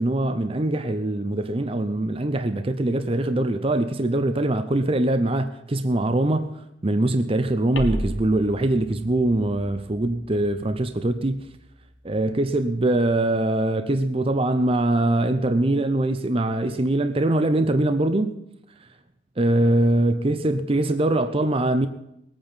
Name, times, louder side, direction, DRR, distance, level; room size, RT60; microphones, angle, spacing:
voice 1, 0.0-6.5 6.8-11.4 12.0-18.3 19.4-21.9, right 1 dB, 30° right, 0.6 m, -22 dB
sound 1, 7.7-12.6, equal, 75° left, 1.9 m, -37 dB
20.5 x 8.8 x 5.7 m
head